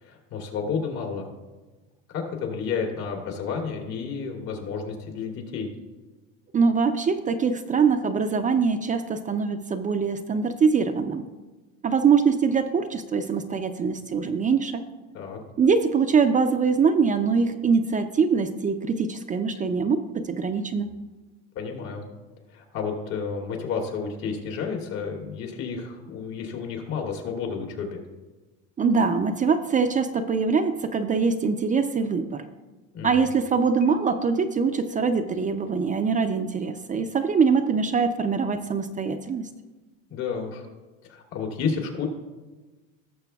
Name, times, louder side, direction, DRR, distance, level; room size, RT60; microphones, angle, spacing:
voice 1, 0.0-1.3 2.1-5.7 15.1-15.4 21.5-22.0 22.5-28.0 32.9-33.2 40.1-40.7 41.1-42.1, left 5 dB, 75° left, 0 dB, 2.6 m, -31 dB
voice 2, 6.5-11.3 11.8-14.8 15.6-20.9 28.8-32.4 33.0-39.5, right 5 dB, 20° right, 7 dB, 0.4 m, -23 dB
Marimba xylophone, 33.8-36.0, left 8 dB, 55° left, 0.8 m, -43 dB
18.0 x 6.8 x 2.3 m, 1.2 s
supercardioid pair, 120°, 36 cm